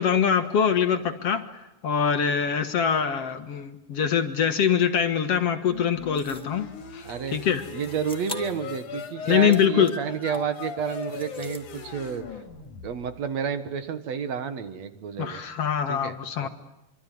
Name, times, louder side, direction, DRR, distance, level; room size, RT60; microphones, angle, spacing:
voice 1, 0.0-1.4 1.8-6.7 6.9-7.6 9.3-9.9 15.2-16.5, left 7 dB, 55° left, 8 dB, 2.3 m, -23 dB
sound 1, 5.7-13.3, left 6 dB, 80° left, 3.7 m, -39 dB
sound 2, 6.1-6.5 7.8-8.6 9.1-10.6 11.0-11.7, left 1 dB, ahead, 1.3 m, -42 dB
voice 2, 7.0-7.4 7.7-12.2 12.8-15.4 15.9-16.1 16.4-16.5, right 7 dB, 65° right, 10 dB, 2.6 m, -30 dB
25.5 x 24.5 x 9.4 m, 0.91 s
omnidirectional pair, 3.5 m